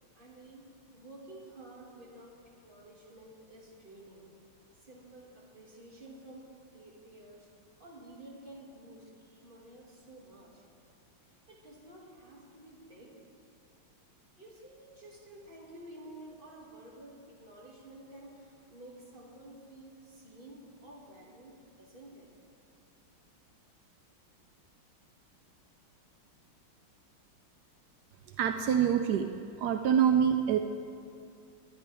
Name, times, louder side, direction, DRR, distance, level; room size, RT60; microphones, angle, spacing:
voice 1, 0.1-4.3 4.8-7.5 7.8-10.6 11.2-13.2 14.4-22.3, right 1 dB, 25° right, -4 dB, 2.3 m, -51 dB
voice 2, 28.4-29.3 29.6-30.6, right 8 dB, 80° right, 6 dB, 0.9 m, -25 dB
21.0 x 9.9 x 3.5 m, 2.5 s
omnidirectional pair, 2.3 m